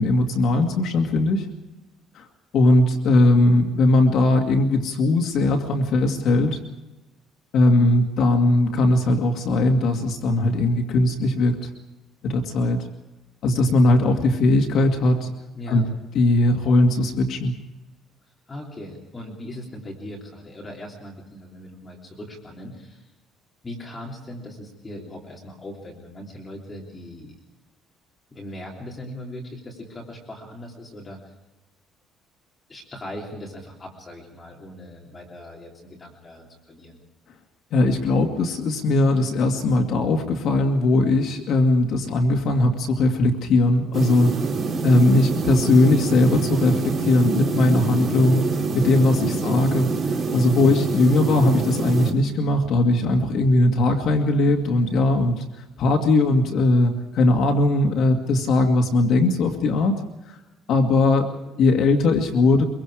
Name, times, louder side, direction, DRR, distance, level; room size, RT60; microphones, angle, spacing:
voice 1, 0.0-1.5 2.1-2.3 2.5-6.6 7.5-11.7 12.2-12.8 13.4-15.3 15.7-15.9 16.1-17.5 37.7-44.4 44.8-55.4 55.8-60.4 60.7-62.7, left 2 dB, 55° left, 3 dB, 2.3 m, -19 dB
voice 2, 15.5-15.9 18.5-23.1 23.6-27.3 28.3-31.3 32.7-37.0 49.2-49.7, left 1 dB, 15° left, -2 dB, 3.4 m, -39 dB
sound 1, 43.9-52.1, right 4 dB, 35° right, 3.3 m, -26 dB
24.5 x 23.0 x 5.0 m, 1.0 s
cardioid pair, 175°, 0 cm